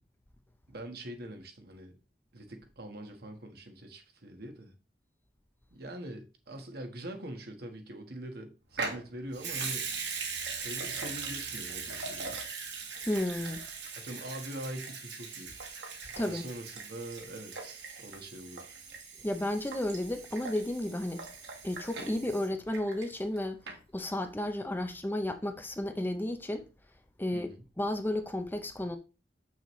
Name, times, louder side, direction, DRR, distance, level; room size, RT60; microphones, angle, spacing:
voice 1, 0.7-2.0 2.3-4.7 5.7-9.9 10.6-12.4 14.0-15.5 16.2-18.7 27.3-27.6, right 1 dB, 60° right, 1.4 m, -43 dB
Water tap faucet / Sink (filling or washing) / Liquid, 8.7-23.4 23.7-23.8, right 5 dB, 75° right, 1.6 m, -40 dB
voice 2, 13.1-13.6 16.1-16.4 19.2-21.2 21.6-23.6 23.9-26.6 27.2-27.5 27.8-29.0, left 1 dB, 10° left, 0.6 m, -32 dB
7.1 x 6.3 x 3.1 m
head